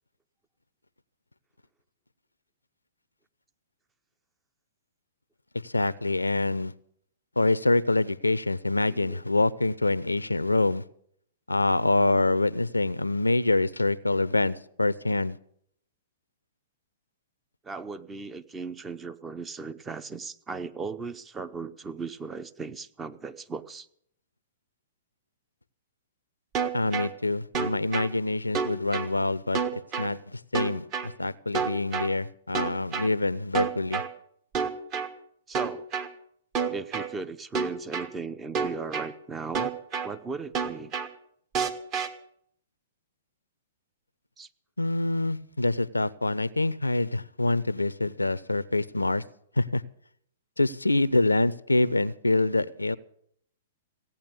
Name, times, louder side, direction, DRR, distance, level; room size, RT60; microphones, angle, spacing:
voice 1, 5.6-6.7 7.4-10.8 11.5-15.4 26.7-34.0 44.8-49.2 49.6-49.8 50.6-53.0, left 2 dB, 90° left, 0.5 m, -26 dB
voice 2, 8.8-9.2 17.6-23.9 35.5-35.9 36.7-39.7 40.0-40.9 44.4-44.5, right 4 dB, 15° right, 0.7 m, -37 dB
sound 1, 26.5-27.1 27.5-28.1 28.5-29.1 29.5-30.1 30.5-31.1 31.5-32.1 32.5-33.1 33.5-34.1 34.5-35.1 35.5-36.1 36.5-37.1 37.5-38.1 38.5-39.1 39.5-40.1 40.5-41.1 41.5-42.1, right 6 dB, 30° right, 1.3 m, -28 dB
16.5 x 8.8 x 8.0 m
figure-of-eight pair, 110°, 0 cm